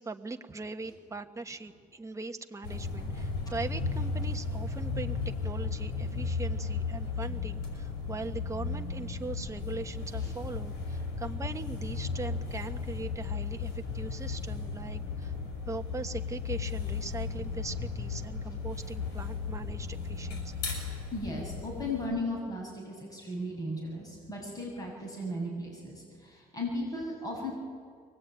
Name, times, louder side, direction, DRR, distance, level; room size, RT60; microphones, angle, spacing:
voice 1, 0.0-15.3 15.6-20.5, right 3 dB, 20° right, 6 dB, 1.3 m, -40 dB
sound 1, 2.6-22.1, left 4 dB, 80° left, 7.2 m, -35 dB
voice 2, 21.1-27.5, left 1 dB, 20° left, -1 dB, 7.0 m, -36 dB
23.5 x 19.0 x 9.1 m, 2.1 s
cardioid pair, 110°, 17 cm